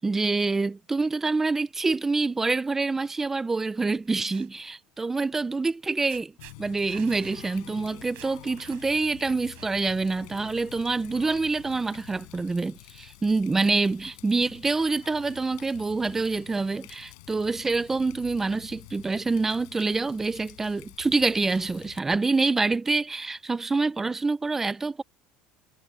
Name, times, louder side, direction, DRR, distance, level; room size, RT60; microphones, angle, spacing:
voice 1, 0.0-6.3 6.6-25.0, right 3 dB, 15° right, 0.7 m, -26 dB
sound 1, 4.1-4.5 5.7-5.8 6.1-6.6 6.9-7.5 7.8-7.9 8.1-9.0 9.5-10.0, right 23 dB, 65° right, 6.6 m, -48 dB
Water tap faucet, 6.4-22.0, left 26 dB, 90° left, 6.7 m, -48 dB
cardioid pair, 140°, 3 cm